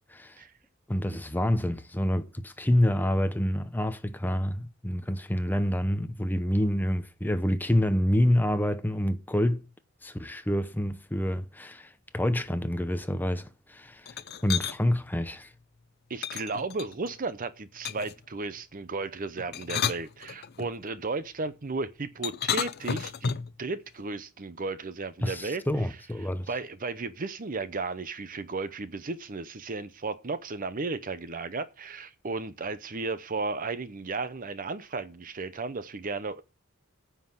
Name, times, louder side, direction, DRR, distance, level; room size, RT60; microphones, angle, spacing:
voice 1, 0.9-9.6 10.0-14.1 14.4-15.5 25.2-26.5, left 1 dB, 10° left, 0.7 m, -27 dB
sound 1, 14.1-14.8 16.2-17.1 17.8-18.2 19.4-20.7 22.2-23.6, left 7 dB, 50° left, 0.6 m, -32 dB
voice 2, 16.1-25.6 26.5-36.4, right 3 dB, 40° right, 0.7 m, -34 dB
9.7 x 5.8 x 7.2 m
head